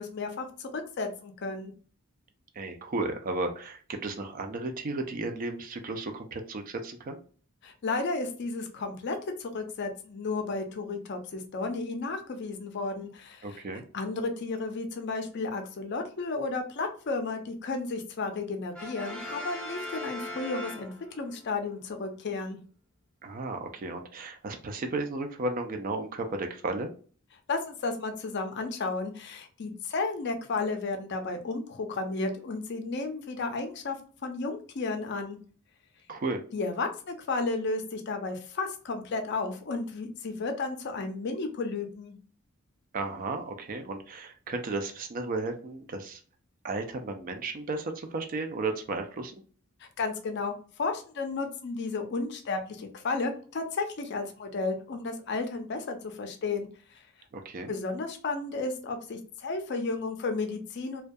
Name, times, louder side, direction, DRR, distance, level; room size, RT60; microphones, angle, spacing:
voice 1, 0.0-1.7 7.6-13.6 13.9-22.6 27.5-34.0 34.2-35.4 36.5-42.1 50.0-56.7 57.7-61.0, left 3 dB, 55° left, 6 dB, 0.5 m, -33 dB
voice 2, 2.6-7.2 13.4-13.8 23.2-26.9 36.1-36.4 42.9-46.2 46.6-49.3 57.3-57.7, right 3 dB, 40° right, 5 dB, 0.4 m, -34 dB
Brass instrument, 18.7-21.4, left 1 dB, 5° left, 0.6 m, -39 dB
2.2 x 2.2 x 2.5 m, 0.41 s
head